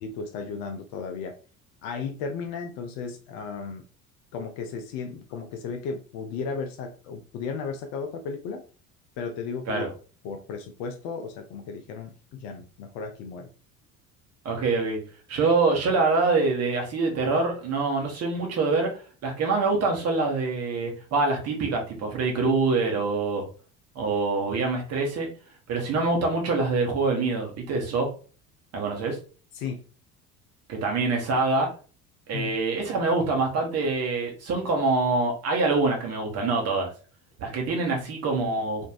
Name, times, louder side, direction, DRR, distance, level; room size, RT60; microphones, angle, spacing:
voice 1, 0.0-1.4 1.8-3.8 4.3-8.6 9.2-9.9 10.2-13.5 29.5-29.8 32.3-32.6, left 5 dB, 45° left, 5 dB, 0.4 m, -35 dB
voice 2, 14.4-15.0 15.3-18.9 19.2-23.4 23.9-25.3 25.7-28.1 28.7-29.2 30.7-31.7 32.3-36.9 37.4-38.9, right 3 dB, 35° right, 1 dB, 1.0 m, -25 dB
3.1 x 2.4 x 2.3 m, 0.37 s
figure-of-eight pair, 60°, 44 cm